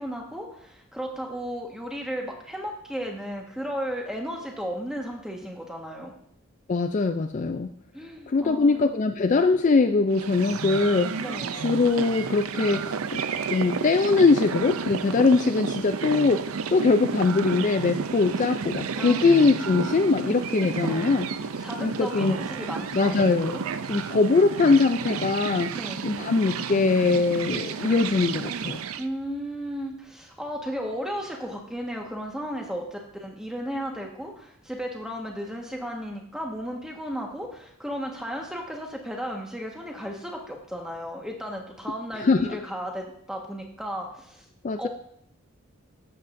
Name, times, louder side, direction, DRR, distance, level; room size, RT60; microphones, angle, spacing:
voice 1, 0.0-6.1 7.9-9.0 11.2-11.5 19.0-19.3 20.8-21.1 21.6-24.1 25.7-26.0 29.0-44.4 44.8-44.9, equal, 5° right, 0 dB, 1.4 m, -34 dB
voice 2, 6.7-7.7 8.3-11.2 11.6-13.2 13.5-21.3 21.6-22.4 22.9-23.6 23.9-25.7 26.0-28.8 42.2-42.6 44.6-44.9, left 3 dB, 35° left, 8 dB, 0.3 m, -22 dB
sound 1, 10.1-29.1, right 6 dB, 80° right, 0.5 m, -32 dB
13.5 x 7.9 x 2.6 m, 0.70 s
head